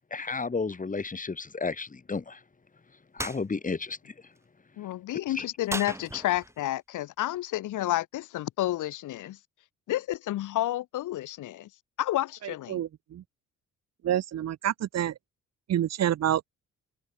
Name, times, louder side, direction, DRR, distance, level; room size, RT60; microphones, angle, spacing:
voice 1, 0.1-2.4 3.1-4.1 5.3-5.4, left 4 dB, 25° left, 3.4 m, -32 dB
sound 1, 3.2-3.4 5.7-6.6, right 1 dB, 10° right, 1.8 m, -36 dB
voice 2, 4.8-9.4 9.9-11.7 12.0-12.8, left 14 dB, 85° left, 3.6 m, -30 dB
voice 3, 12.4-13.2 14.0-15.1 15.7-16.5, right 11 dB, 60° right, 1.1 m, -28 dB
open air
cardioid pair, 90°, 30 cm